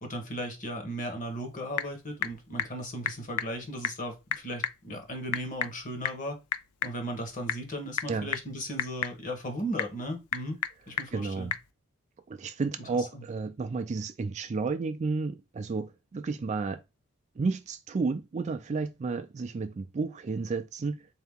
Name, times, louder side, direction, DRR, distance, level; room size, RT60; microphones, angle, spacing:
voice 1, 0.0-6.4 6.8-10.6 10.9-11.5 12.9-13.2, equal, 35° left, 1.1 m, -36 dB
Typing / Telephone, 1.2-11.7, left 9 dB, 80° left, 0.4 m, -37 dB
voice 2, 11.1-11.5 12.3-16.8 17.4-21.1, right 4 dB, 30° right, 0.3 m, -32 dB
3.9 x 2.8 x 3.5 m
head